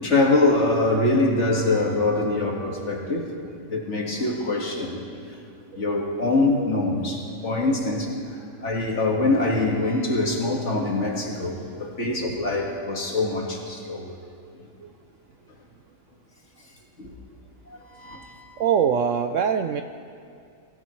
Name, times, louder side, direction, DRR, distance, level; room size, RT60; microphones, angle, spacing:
voice 1, 0.0-3.3 3.7-5.0 5.7-14.2 17.0-17.1 17.7-18.6, left 2 dB, 50° left, -1 dB, 2.1 m, -24 dB
voice 2, 18.6-19.8, right 7 dB, 70° right, 7 dB, 0.8 m, -23 dB
22.5 x 16.5 x 3.2 m, 2.4 s
omnidirectional pair, 1.7 m